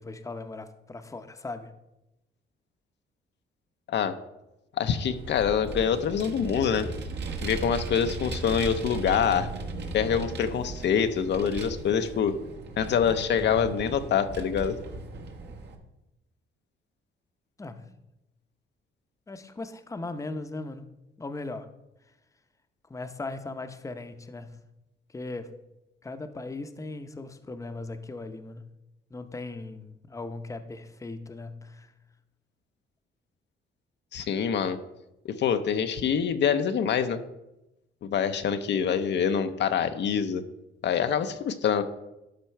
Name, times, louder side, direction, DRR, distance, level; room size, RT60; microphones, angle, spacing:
voice 1, 0.0-1.7 17.6-17.9 19.3-20.9 21.2-21.7 22.9-24.6 25.1-25.6 26.0-28.7 29.1-31.9, left 2 dB, 15° left, 8 dB, 0.7 m, -38 dB
voice 2, 4.8-6.9 7.4-9.5 9.9-12.4 12.8-14.8 34.1-34.8 35.2-37.2 38.0-40.4 40.8-41.8, left 7 dB, 65° left, 8 dB, 0.6 m, -25 dB
Vehicle, 4.9-15.7, right 3 dB, 60° right, 1.2 m, -37 dB
12.0 x 4.4 x 4.4 m, 0.94 s
cardioid pair, 90°, 20 cm